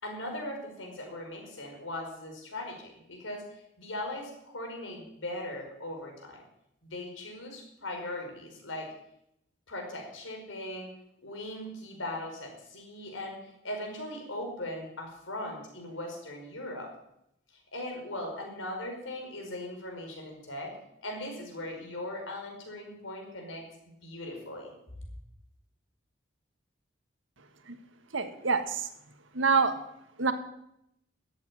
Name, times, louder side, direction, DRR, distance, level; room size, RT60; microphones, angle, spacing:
voice 1, 0.0-6.4 6.8-8.9 9.7-10.9 11.2-16.9 17.7-20.7 21.0-24.7, left 1 dB, 85° left, 2 dB, 5.2 m, -39 dB
voice 2, 28.1-28.9 29.3-29.7 30.2-30.3, right 4 dB, 85° right, 9 dB, 1.6 m, -26 dB
14.0 x 8.5 x 9.9 m, 0.78 s
head